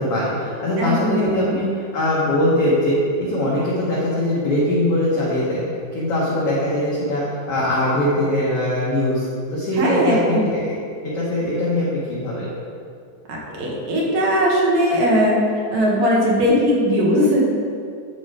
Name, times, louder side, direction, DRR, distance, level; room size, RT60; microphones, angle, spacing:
voice 1, 0.0-5.6 5.9-10.6 11.0-12.5, left 1 dB, 70° left, -7 dB, 1.5 m, -21 dB
voice 2, 0.8-1.6 9.7-10.5 13.3-15.4 15.7-17.5, equal, 60° right, -3 dB, 2.0 m, -19 dB
9.2 x 4.2 x 4.8 m, 2.3 s
omnidirectional pair, 4.2 m